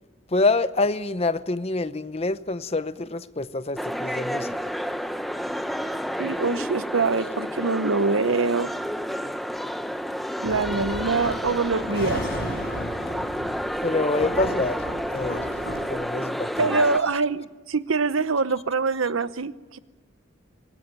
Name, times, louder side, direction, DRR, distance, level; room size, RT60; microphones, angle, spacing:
voice 1, 0.3-4.5 13.8-15.5 15.9-16.8, left 3 dB, 30° left, 0.7 m, -26 dB
sound 1, 3.8-17.0, equal, ahead, 0.8 m, -30 dB
voice 2, 6.2-8.7 10.4-12.3 16.6-19.8, right 4 dB, 90° right, 0.9 m, -24 dB
sound 2, 10.5-15.9, equal, 50° left, 7.9 m, -34 dB
25.0 x 19.0 x 9.0 m
head